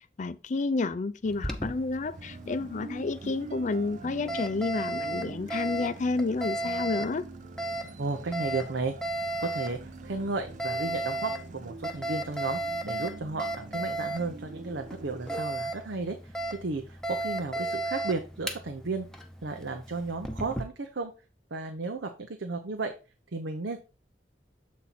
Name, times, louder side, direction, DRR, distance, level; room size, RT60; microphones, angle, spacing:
voice 1, 0.2-7.2, left 3 dB, 45° left, 0.4 m, -30 dB
Alarm, 1.3-20.6, right 1 dB, 5° left, 0.8 m, -35 dB
sound 1, 2.1-15.4, right 4 dB, 45° right, 0.4 m, -46 dB
voice 2, 8.0-8.9 9.4-16.3 16.6-19.1 19.4-21.1 21.5-22.9 23.3-23.8, right 3 dB, 85° right, 0.7 m, -34 dB
7.5 x 4.2 x 4.2 m
head